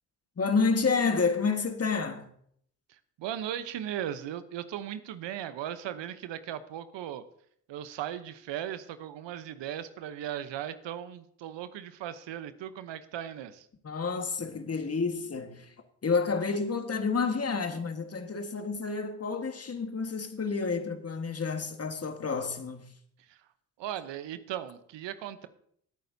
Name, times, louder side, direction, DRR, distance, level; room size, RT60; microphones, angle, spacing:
voice 1, 0.4-2.3 13.8-15.7 16.0-22.9, left 4 dB, 30° left, 1.6 m, -29 dB
voice 2, 2.9-7.2 7.7-13.7 23.3-23.4 23.8-25.5, right 10 dB, 65° right, 0.9 m, -37 dB
17.0 x 9.3 x 2.7 m
hypercardioid pair, 50°, 47 cm